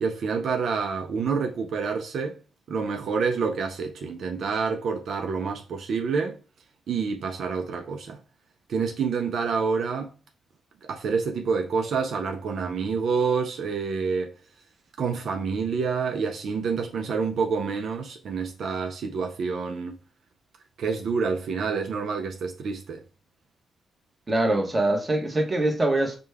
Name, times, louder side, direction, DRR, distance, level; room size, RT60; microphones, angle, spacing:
voice 1, 0.0-2.4 2.7-6.4 6.9-8.2 8.7-10.1 10.8-14.3 15.0-20.0 20.8-23.0, right 5 dB, 70° right, 0.5 m, -28 dB
voice 2, 24.3-26.2, right 1 dB, 25° right, 1.1 m, -23 dB
5.1 x 2.2 x 3.3 m
cardioid pair, 105°, 0 cm